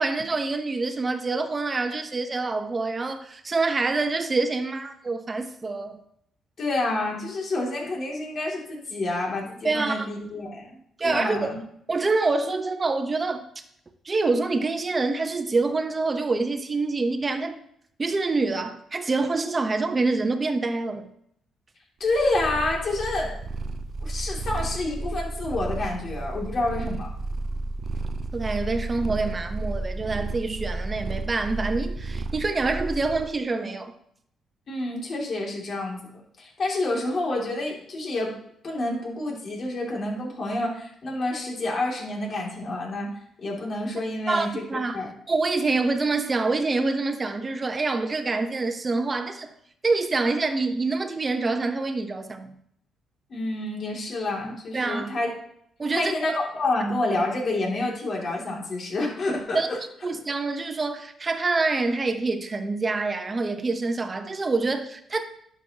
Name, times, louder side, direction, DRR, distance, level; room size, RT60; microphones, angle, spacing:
voice 1, 0.0-6.0 9.6-10.1 11.0-11.6 11.9-13.4 14.0-17.6 18.0-21.1 28.3-33.9 44.3-45.0 45.3-49.5 49.8-52.5 54.7-55.1 55.8-56.4 59.5-59.7 60.0-65.3, right 3 dB, 30° right, 0.9 m, -26 dB
voice 2, 6.6-11.6 22.0-23.4 24.0-27.1 34.7-36.0 36.4-38.3 38.6-44.6 44.9-45.1 53.3-55.3 55.9-59.8, left 2 dB, 50° left, 2.7 m, -28 dB
Purr, 22.1-33.4, right 2 dB, 50° right, 0.6 m, -32 dB
11.0 x 6.3 x 2.9 m
cardioid pair, 90°, 0 cm